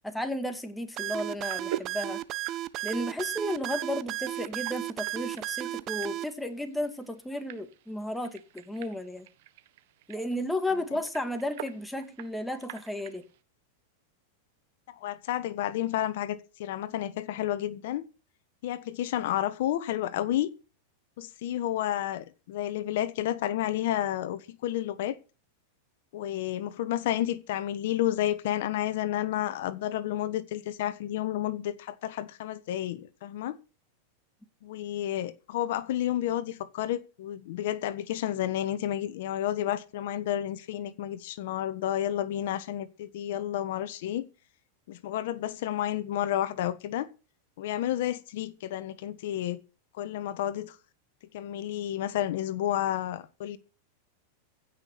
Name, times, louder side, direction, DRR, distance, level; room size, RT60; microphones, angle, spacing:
voice 1, 0.0-2.2 2.8-9.3 10.1-13.2, left 1 dB, 5° left, 2.1 m, -33 dB
sound 1, 1.0-6.3, right 15 dB, 40° right, 1.0 m, -34 dB
sound 2, 1.0-13.4, right 13 dB, 65° right, 1.4 m, -46 dB
voice 2, 14.9-18.0 18.6-20.5 21.2-25.2 26.1-33.6 34.6-44.3 44.9-47.1 47.6-49.6 49.9-50.8 51.3-53.6, left 12 dB, 65° left, 1.3 m, -31 dB
16.0 x 6.1 x 8.4 m
hypercardioid pair, 125°, 0 cm